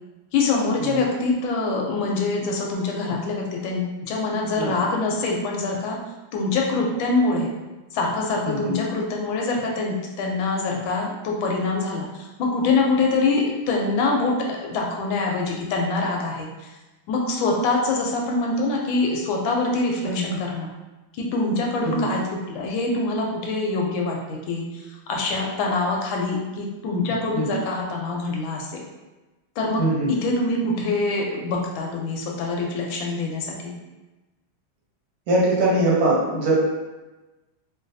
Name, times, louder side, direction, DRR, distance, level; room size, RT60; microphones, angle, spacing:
voice 1, 0.3-6.0 6.3-7.5 7.9-16.7 17.1-20.7 21.1-28.8 29.6-29.8 30.1-33.8, left 3 dB, 75° left, -1 dB, 1.2 m, -24 dB
voice 2, 29.8-30.1 35.3-36.5, right 1 dB, 90° right, -6 dB, 1.7 m, -22 dB
3.9 x 2.2 x 2.5 m, 1.1 s
omnidirectional pair, 2.3 m